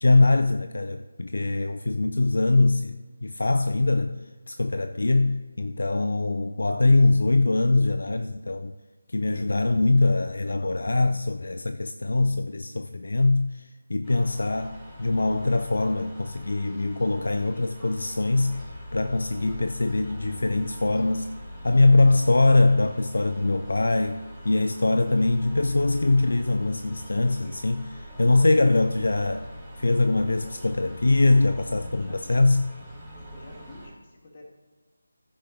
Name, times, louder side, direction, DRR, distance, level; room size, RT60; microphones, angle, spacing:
voice 1, 0.0-4.2 4.5-8.7 9.1-18.6 18.9-21.3 21.6-29.5 29.8-32.6, left 2 dB, 55° left, 0.4 m, -22 dB
sound 1, 14.0-33.9, equal, ahead, 3.0 m, -42 dB
voice 2, 31.9-32.3 33.3-34.4, left 2 dB, 30° left, 1.7 m, -49 dB
15.0 x 6.3 x 3.8 m
figure-of-eight pair, 160°, 0 cm